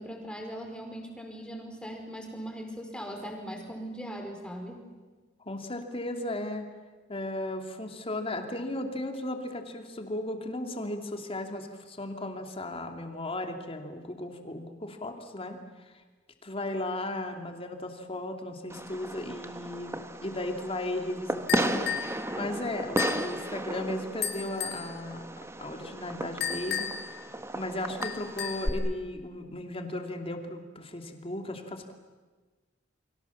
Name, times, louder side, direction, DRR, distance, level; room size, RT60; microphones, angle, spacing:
voice 1, 0.0-4.9, equal, 5° left, 2 dB, 4.6 m, -39 dB
voice 2, 5.4-6.7 7.1-15.6 16.4-19.9 20.2-25.2 25.6-26.9 27.5-31.9, left 1 dB, 30° left, 5 dB, 2.8 m, -36 dB
Fireworks, 18.7-28.7, right 1 dB, 15° right, 1.4 m, -35 dB
sound 1, 21.5-22.2 23.0-23.3 24.2-24.9 26.4-27.1 28.0-28.7, left 8 dB, 60° left, 3.7 m, -33 dB
29.5 x 23.5 x 7.2 m, 1.3 s
head